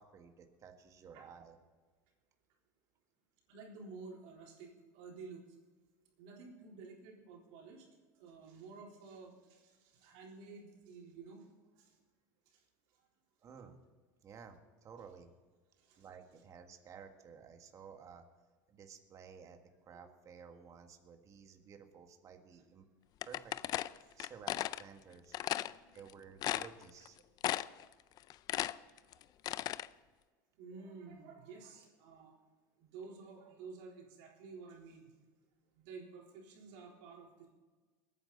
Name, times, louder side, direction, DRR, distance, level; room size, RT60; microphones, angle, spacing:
voice 1, 0.0-1.6 13.4-13.8 14.2-15.3 16.0-18.3 18.7-19.6 19.8-22.8 23.2-23.5 24.2-25.4 25.9-27.2, right 6 dB, 35° right, 5 dB, 1.7 m, -54 dB
voice 2, 3.5-5.4 6.2-7.9 8.1-12.0 12.5-12.6 15.8-16.1 19.9-20.0 24.0-24.3 25.6-25.9 27.8-27.9 28.5-29.2 29.5-29.8 30.6-32.3 32.8-35.1 35.8-37.5, right 4 dB, 70° right, -1 dB, 3.8 m, -52 dB
sound 1, 23.2-24.8 25.3-25.7 26.1-26.2 26.4-27.1 27.4-27.8 28.2-29.9, left 14 dB, 45° left, 0.4 m, -36 dB
21.5 x 9.3 x 4.1 m, 1.4 s
supercardioid pair, 115°, 9 cm